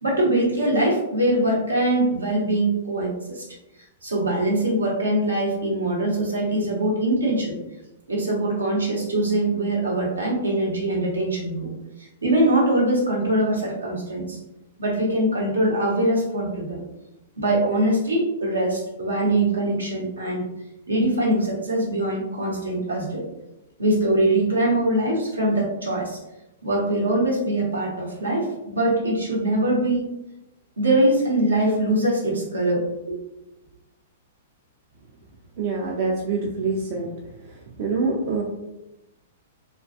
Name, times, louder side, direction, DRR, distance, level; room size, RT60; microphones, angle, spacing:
voice 1, 0.0-3.5 4.0-7.6 8.1-11.7 12.0-14.4 14.8-16.8 17.4-20.5 20.9-23.2 23.8-26.2 26.6-30.1 30.8-33.2, right 1 dB, 75° right, -3 dB, 0.8 m, -22 dB
voice 2, 35.6-37.1 37.8-38.4, right 4 dB, 45° right, -1 dB, 0.4 m, -25 dB
2.5 x 2.3 x 2.3 m, 0.93 s
figure-of-eight pair, 105°, 0 cm